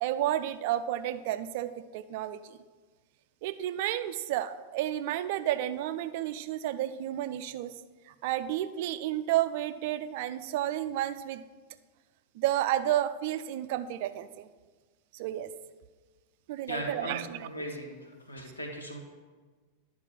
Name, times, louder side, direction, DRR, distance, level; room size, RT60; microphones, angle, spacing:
voice 1, 0.0-2.6 3.4-7.7 8.1-11.4 12.3-14.5 15.1-15.5 16.5-17.5, right 12 dB, 50° right, 12 dB, 0.4 m, -31 dB
voice 2, 16.7-17.2 17.5-19.0, equal, 80° left, 1 dB, 1.5 m, -38 dB
10.5 x 4.7 x 5.9 m, 1.4 s
figure-of-eight pair, 90°, 0 cm